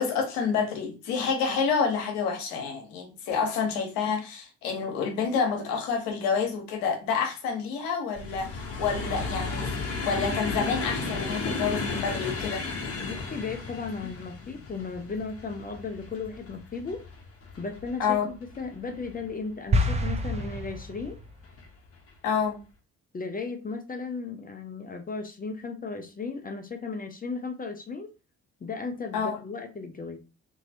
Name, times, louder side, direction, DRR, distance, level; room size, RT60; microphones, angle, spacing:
voice 1, 0.0-9.8 10.0-12.7 18.0-18.3 22.2-22.6 29.1-29.4, left 6 dB, 70° left, 0.9 m, -28 dB
sound 1, 8.1-19.3 19.9-20.6 21.4-21.6 21.9-22.1, left 4 dB, 40° left, 0.9 m, -34 dB
voice 2, 13.0-17.1 17.6-21.2 23.1-28.1 28.6-30.2, left 4 dB, 25° left, 0.6 m, -35 dB
sound 2, 19.7-21.3, equal, 20° right, 0.6 m, -27 dB
3.0 x 2.7 x 2.6 m
figure-of-eight pair, 40°, 37 cm